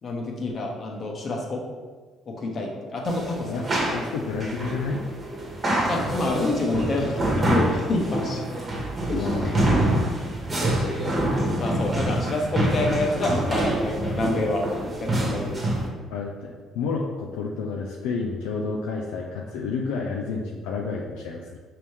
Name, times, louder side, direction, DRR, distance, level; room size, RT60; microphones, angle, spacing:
voice 1, 0.0-1.6 2.3-3.5 3.8-3.9 5.9-8.4 9.1-9.6 11.6-14.6 15.0-15.7, left 2 dB, 50° left, 0 dB, 0.9 m, -27 dB
sound 1, 3.1-15.9, right 1 dB, 35° right, 1.2 m, -26 dB
voice 2, 3.5-5.0 9.2-9.9 16.1-21.6, left 4 dB, 80° left, -1 dB, 0.4 m, -30 dB
5.3 x 2.9 x 3.2 m, 1.4 s
hypercardioid pair, 55°, 0 cm